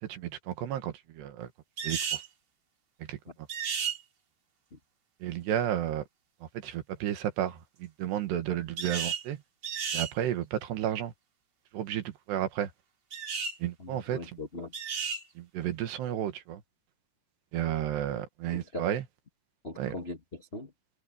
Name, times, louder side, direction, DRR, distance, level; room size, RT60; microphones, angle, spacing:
voice 1, 0.0-1.5 1.8-2.2 3.0-3.2 5.2-6.0 6.4-9.4 9.9-11.1 11.7-12.7 13.6-14.2 15.4-16.6 17.5-19.0 19.8-19.9, right 11 dB, 75° right, 3.7 m, -32 dB
sound 1, 1.8-2.3 3.5-4.0 8.8-9.2 9.6-10.1 13.1-13.6 14.7-15.2, right 7 dB, 40° right, 3.3 m, -33 dB
voice 2, 13.8-14.7 18.5-18.9 19.6-20.7, left 2 dB, 30° left, 1.0 m, -40 dB
omnidirectional pair, 4.9 m